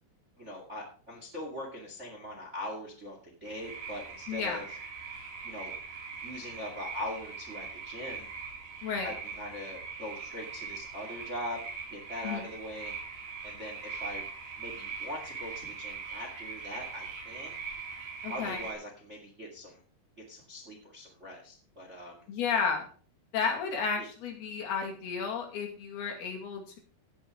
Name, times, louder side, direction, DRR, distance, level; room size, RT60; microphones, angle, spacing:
voice 1, 0.4-4.6 5.4-5.7 6.2-8.3 9.0-11.6 11.9-12.9 13.4-14.2 14.6-17.5 18.3-19.8 20.3-22.2 24.0-24.1, left 1 dB, 25° right, 0 dB, 1.7 m, -41 dB
sound 1, 3.4-18.7, right 5 dB, 55° right, 5.2 m, -41 dB
voice 2, 4.3-4.7 8.8-9.1 12.2-12.5 18.2-18.6 22.3-22.9 23.3-26.8, left 6 dB, 65° left, 1 dB, 4.1 m, -32 dB
16.5 x 5.8 x 4.9 m, 0.42 s
omnidirectional pair, 5.0 m